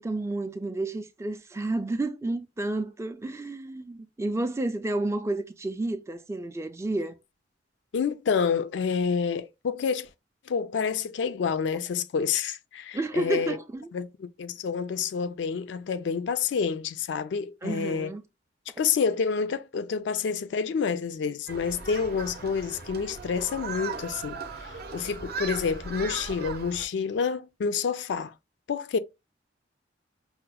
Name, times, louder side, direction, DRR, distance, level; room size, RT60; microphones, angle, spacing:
voice 1, 0.0-7.1 12.9-13.9 17.6-18.2, right 2 dB, 15° right, 0.3 m, -31 dB
voice 2, 7.9-10.1 10.5-13.6 13.9-18.1 18.8-28.3 28.7-29.0, left 6 dB, 70° left, 0.4 m, -28 dB
Human group actions, 21.5-26.9, right 4 dB, 60° right, 0.6 m, -38 dB
5.6 x 2.0 x 2.2 m
head